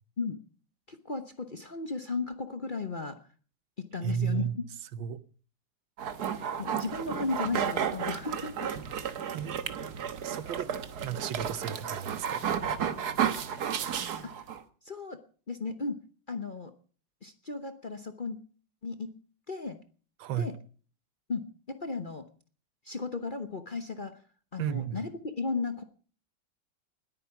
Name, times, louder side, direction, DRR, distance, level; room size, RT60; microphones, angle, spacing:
voice 1, 0.9-3.2 3.8-4.6 6.2-8.6 14.8-15.2 15.5-16.0 16.3-16.7 17.2-18.4 18.8-19.1 19.5-19.8 20.3-20.5 21.3-22.2 22.8-24.2 24.5-25.8, left 4 dB, 35° left, 0.8 m, -35 dB
voice 2, 4.0-4.6 4.9-5.2 9.3-9.5 10.2-10.7 11.0-12.4 20.2-20.5 24.6-25.1, right 8 dB, 90° right, 1.7 m, -33 dB
sound 1, 6.0-14.6, right 8 dB, 60° right, 1.5 m, -33 dB
20.0 x 9.2 x 5.9 m
omnidirectional pair, 2.1 m